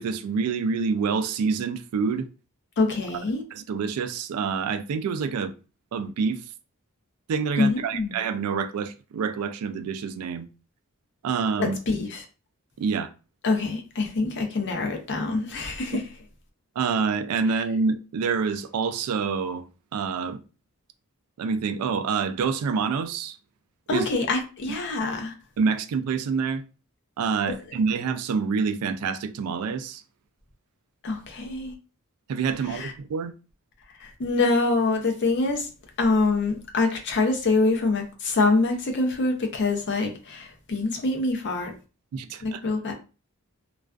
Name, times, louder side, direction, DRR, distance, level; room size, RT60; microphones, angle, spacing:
voice 1, 0.0-2.3 3.5-5.5 5.9-6.4 7.3-10.5 11.2-11.8 12.8-13.1 16.8-19.6 19.9-20.4 21.4-23.4 23.9-24.1 25.6-26.6 27.2-30.0 32.3-33.3 42.1-42.6, right 5 dB, 85° right, 0.3 m, -27 dB
voice 2, 2.8-3.4 7.6-8.2 11.6-12.2 13.4-16.0 23.9-25.3 27.5-27.6 31.0-31.7 32.7-32.9 34.0-35.7 36.0-41.7 42.4-42.9, left 3 dB, 55° left, 0.6 m, -25 dB
2.3 x 2.2 x 2.3 m
head